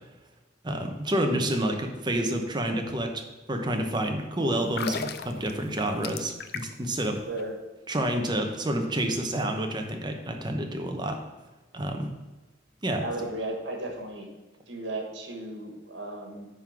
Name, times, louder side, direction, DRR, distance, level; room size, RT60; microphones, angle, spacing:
voice 1, 0.6-3.2 3.5-7.2 7.9-11.2 11.7-12.1 12.8-13.3, right 1 dB, 25° right, 4 dB, 0.9 m, -29 dB
sound 1, 4.6-6.9 7.2-7.4, left 6 dB, 60° left, 0.5 m, -36 dB
voice 2, 7.2-7.6 12.9-14.3 14.7-16.5, right 2 dB, 75° right, 2 dB, 1.8 m, -35 dB
9.7 x 3.9 x 5.8 m, 1.2 s
head